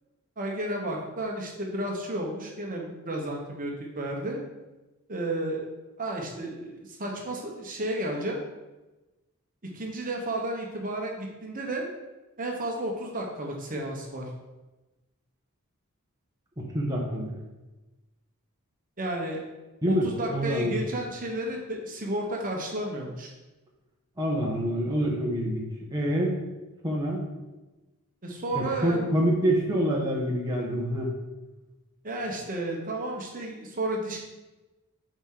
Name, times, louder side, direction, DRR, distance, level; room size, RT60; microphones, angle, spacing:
voice 1, 0.4-4.4 5.1-5.7 6.0-8.4 9.7-11.9 12.4-14.3 19.0-19.4 19.9-23.3 28.2-29.0 32.0-34.2, right 1 dB, 40° right, 0 dB, 1.1 m, -32 dB
voice 2, 16.6-17.3 19.8-20.8 24.2-25.7 25.9-26.4 26.8-27.3 28.5-31.1, right 1 dB, 15° right, -3 dB, 1.0 m, -26 dB
7.9 x 4.3 x 3.9 m, 1.1 s
head